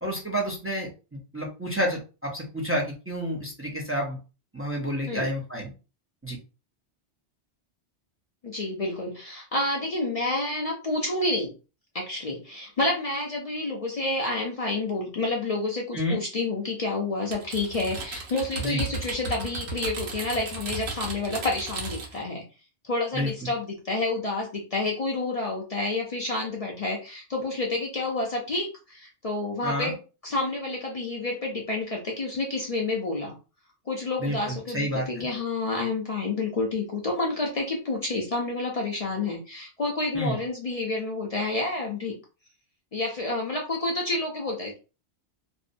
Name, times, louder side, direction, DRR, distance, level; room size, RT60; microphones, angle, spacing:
voice 1, 0.0-4.2 4.5-5.7 6.2-6.4 15.9-16.2 18.6-18.8 23.1-23.5 29.6-29.9 34.2-35.2 40.1-40.4, equal, 20° right, -2 dB, 0.4 m, -30 dB
voice 2, 8.4-11.5 11.9-22.4 22.8-30.0 30.2-33.3 33.9-42.1 42.9-44.8, left 2 dB, 50° left, 0 dB, 0.4 m, -29 dB
Typing, 17.3-22.2, right 3 dB, 70° right, 1.0 m, -35 dB
2.6 x 2.0 x 2.5 m, 0.32 s
omnidirectional pair, 1.1 m